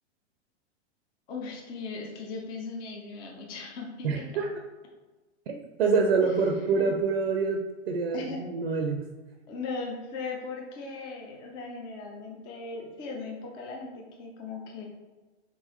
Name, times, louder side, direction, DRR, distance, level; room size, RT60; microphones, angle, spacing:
voice 1, 1.3-4.2 6.2-7.0 8.1-8.4 9.5-14.8, left 4 dB, 15° left, 0 dB, 0.3 m, -38 dB
voice 2, 4.0-4.5 5.5-9.1, right 4 dB, 60° right, 4 dB, 0.5 m, -26 dB
3.9 x 3.7 x 2.8 m, 1.2 s
figure-of-eight pair, 100°, 35 cm